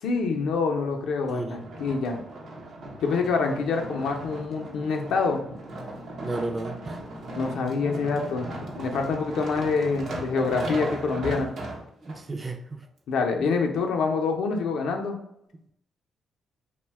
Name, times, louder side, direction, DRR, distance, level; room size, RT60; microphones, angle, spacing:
voice 1, 0.0-2.2 3.0-5.4 7.4-11.5 13.1-15.2, left 4 dB, 80° left, 3 dB, 0.4 m, -26 dB
sound 1, 1.2-12.2 12.8-12.9, right 1 dB, 65° right, 0.7 m, -37 dB
voice 2, 6.2-7.0 12.0-12.8, right 2 dB, 30° right, 6 dB, 0.4 m, -33 dB
2.6 x 2.1 x 3.2 m, 0.77 s
cardioid pair, 70°, 0 cm